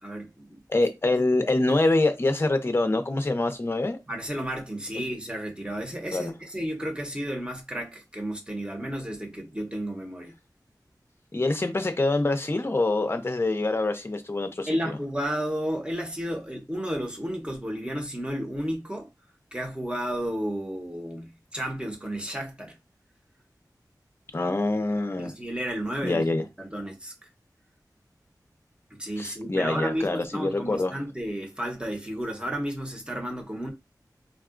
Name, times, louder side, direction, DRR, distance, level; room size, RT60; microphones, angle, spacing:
voice 1, 0.0-0.6 4.1-10.3 14.7-19.1 19.5-22.8 25.2-26.3 26.6-27.3 29.0-33.7, equal, 15° right, 0.9 m, -32 dB
voice 2, 0.7-4.0 6.1-6.3 11.3-15.0 24.3-25.3 26.0-26.4 29.2-30.9, left 2 dB, 35° left, 0.5 m, -25 dB
3.6 x 2.3 x 2.4 m
wide cardioid pair, 70°, 7 cm